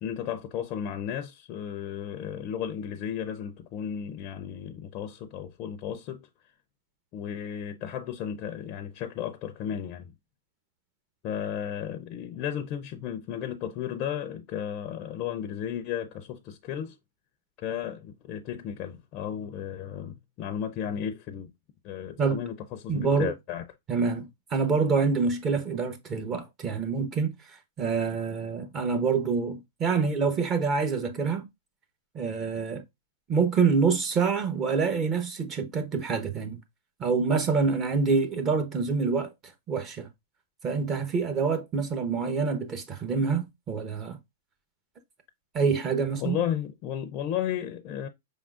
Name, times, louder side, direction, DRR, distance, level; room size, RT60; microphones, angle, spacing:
voice 1, 0.0-6.3 7.1-10.1 11.2-17.0 17.6-21.5 21.8-23.6 46.2-48.1, left 9 dB, 40° left, 0.5 m, -34 dB
voice 2, 22.9-23.3 23.9-31.4 32.1-32.8 33.3-36.6 37.0-39.3 39.7-40.1 40.6-44.2 45.5-46.4, right 5 dB, 30° right, 0.8 m, -26 dB
5.1 x 3.6 x 2.4 m
hypercardioid pair, 125°, 0 cm